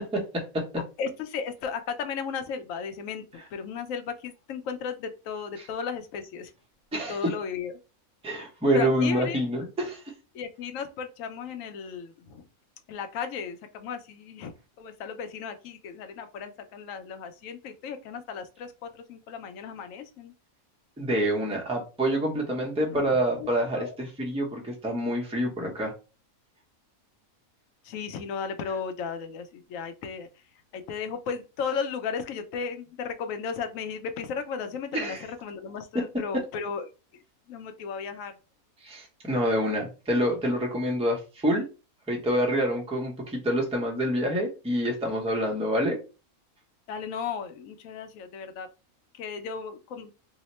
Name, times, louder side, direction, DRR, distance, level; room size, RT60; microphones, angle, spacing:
voice 1, 0.1-0.7 6.9-7.3 8.2-10.0 21.0-25.9 34.9-35.2 38.8-41.7 42.1-46.0, equal, 5° right, -1 dB, 0.5 m, -27 dB
voice 2, 1.0-6.5 7.1-7.7 8.7-9.6 10.3-12.5 12.9-20.3 22.9-24.0 27.8-30.4 30.7-37.2 37.5-38.3 46.9-48.7 49.1-50.1, left 6 dB, 70° left, 8 dB, 0.9 m, -35 dB
2.8 x 2.1 x 4.1 m, 0.31 s
omnidirectional pair, 1.5 m